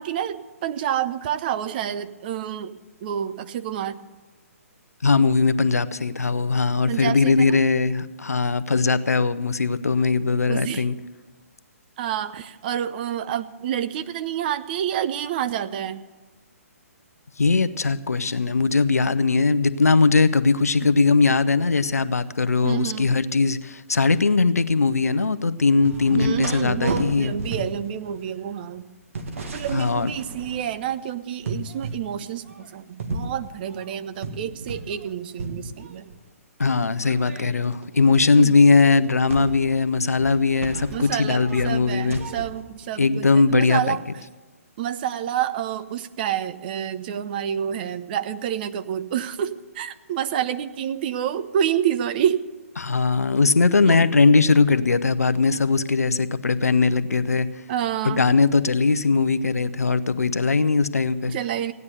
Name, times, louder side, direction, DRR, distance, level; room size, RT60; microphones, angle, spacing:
voice 1, 0.0-4.0 6.9-7.6 10.5-10.9 12.0-16.0 22.6-23.2 26.1-28.8 29.5-36.1 38.4-38.6 40.9-44.0 44.8-52.4 53.9-54.0 57.7-58.3 61.3-61.7, right 10 dB, 40° right, 12 dB, 0.7 m, -28 dB
voice 2, 5.0-10.9 17.4-27.3 29.7-30.1 36.6-42.2 43.0-44.0 52.8-57.5 58.0-61.3, left 4 dB, 80° left, 13 dB, 0.7 m, -20 dB
sound 1, 25.8-31.0 31.4-32.1 32.4-35.1 35.4-36.2 36.8-42.6, right 3 dB, 60° right, 1.9 m, -34 dB
16.5 x 9.6 x 6.9 m, 1.3 s
figure-of-eight pair, 130°, 8 cm